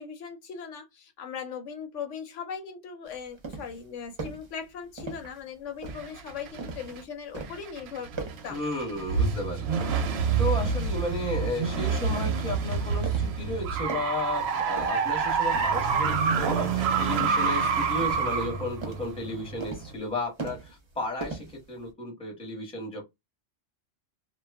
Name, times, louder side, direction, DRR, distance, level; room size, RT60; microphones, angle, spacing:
voice 1, 0.0-8.6, left 6 dB, 75° left, 1.0 m, -39 dB
sound 1, 3.1-3.8 4.2-4.5 5.0-5.4 5.8-7.0 7.3-7.7 8.1-8.6 9.0-9.4 9.8-10.9 11.4-11.8 12.2-12.5 13.0-13.5 13.7-14.3 14.8-15.2 15.5-15.9 16.3-16.8 17.2-17.6 18.0-18.5 18.8-19.1 19.6-20.1 20.4-20.9 21.2-21.9, right 3 dB, 35° right, 0.5 m, -39 dB
sound 2, 5.9-7.0 7.4-20.0, right 5 dB, 65° right, 0.7 m, -27 dB
voice 2, 8.5-9.9 10.4-23.0, left 2 dB, 5° left, 0.8 m, -34 dB
2.3 x 2.0 x 3.3 m
omnidirectional pair, 1.3 m